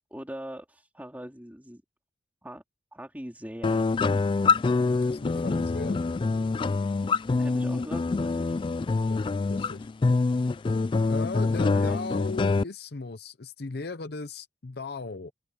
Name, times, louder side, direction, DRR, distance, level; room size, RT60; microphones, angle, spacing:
voice 1, 0.1-1.8 2.4-2.6 2.9-3.9 7.4-8.5 11.6-12.0, equal, 10° right, 3.8 m, -41 dB
sound 1, 3.6-12.6, left 3 dB, 30° left, 0.3 m, -25 dB
voice 2, 4.9-6.0 9.1-9.2 9.5-9.9 11.1-15.3, left 3 dB, 60° left, 0.7 m, -37 dB
open air
head